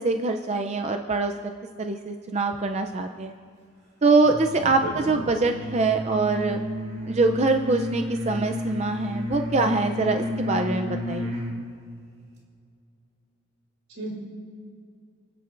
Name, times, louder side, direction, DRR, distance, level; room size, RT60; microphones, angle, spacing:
voice 1, 0.0-1.3 1.8-3.3 4.0-6.6 7.1-11.3, right 3 dB, 30° right, 5 dB, 0.5 m, -24 dB
sound 1, 4.2-11.6, left 1 dB, 55° right, 2.3 m, -32 dB
voice 2, 4.6-5.1 13.9-14.1, right 2 dB, 80° right, -2 dB, 4.0 m, -34 dB
29.0 x 10.0 x 2.6 m, 2.3 s
head